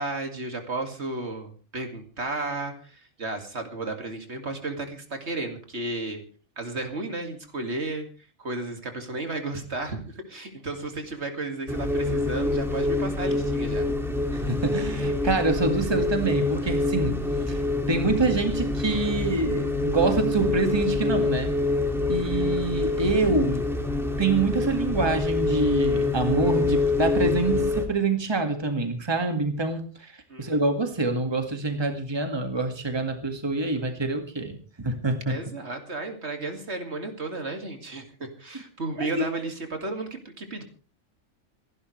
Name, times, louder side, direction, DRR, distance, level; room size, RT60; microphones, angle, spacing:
voice 1, 0.0-6.2 6.6-8.1 8.4-13.9 30.3-30.6 35.3-40.6, right 2 dB, 60° right, 5 dB, 2.5 m, -33 dB
sound 1, 11.7-27.9, left 2 dB, ahead, 2.2 m, -26 dB
voice 2, 14.3-17.2 17.5-21.5 22.1-23.7 24.2-30.1 30.4-35.4 39.0-39.1, right 3 dB, 20° right, 5 dB, 1.9 m, -26 dB
27.5 x 11.5 x 3.2 m, 0.38 s
omnidirectional pair, 1.3 m